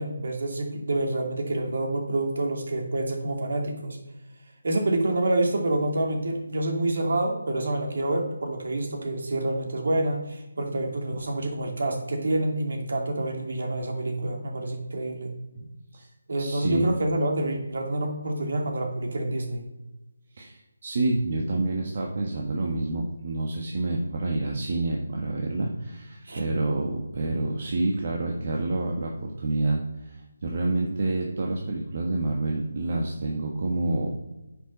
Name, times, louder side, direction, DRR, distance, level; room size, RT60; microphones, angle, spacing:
voice 1, 0.0-4.0 4.6-15.3 16.3-19.6 26.2-26.4, right 1 dB, 60° right, 2 dB, 2.7 m, -27 dB
voice 2, 15.5-16.1 16.4-16.9 20.3-34.1, right 2 dB, 45° right, 0 dB, 1.6 m, -28 dB
9.8 x 5.8 x 5.6 m, 0.99 s
figure-of-eight pair, 160°, 0 cm